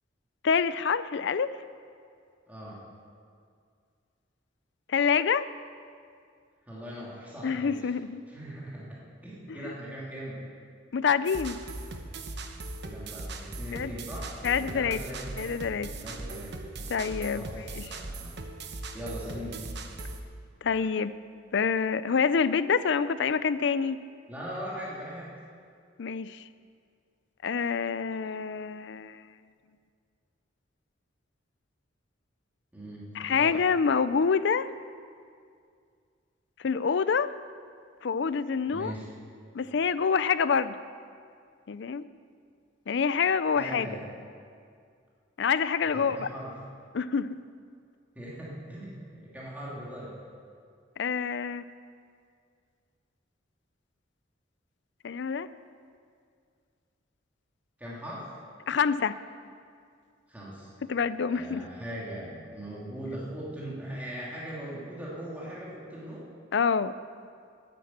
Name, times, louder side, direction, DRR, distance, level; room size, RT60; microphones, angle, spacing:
voice 1, 0.4-1.5 4.9-5.5 7.4-8.2 9.6-9.7 10.9-11.6 13.7-13.9 14.4-15.0 15.4-15.9 16.9-17.4 17.8-17.9 20.6-21.1 21.5-24.0 26.0-26.4 27.4-29.2 33.2-34.7 36.6-37.3 38.0-38.9 39.5-40.8 41.7-42.0 42.9-43.9 45.4-46.3 46.9-47.4 51.0-51.6 55.0-55.5 58.7-59.2 60.9-61.7 66.5-66.9, left 6 dB, 65° left, 15 dB, 0.5 m, -26 dB
voice 2, 2.5-2.8 6.6-7.9 8.3-9.0 9.2-10.4 12.8-15.3 16.0-16.5 17.3-18.3 18.9-19.6 24.3-25.3 32.7-33.6 38.7-39.1 43.6-44.1 45.9-46.5 48.1-50.2 57.8-58.3 60.3-60.7 61.3-66.3, equal, 10° right, -7 dB, 2.7 m, -40 dB
sound 1, 11.3-20.2, right 2 dB, 60° right, 1.0 m, -39 dB
10.5 x 9.9 x 8.5 m, 2.2 s
head